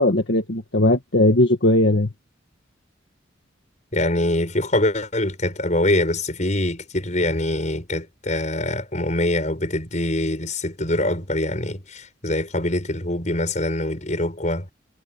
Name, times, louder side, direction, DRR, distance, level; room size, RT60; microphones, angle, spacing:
voice 1, 0.0-2.1, left 1 dB, 60° left, 1.8 m, -18 dB
voice 2, 3.9-14.7, left 1 dB, 40° left, 6.2 m, -24 dB
head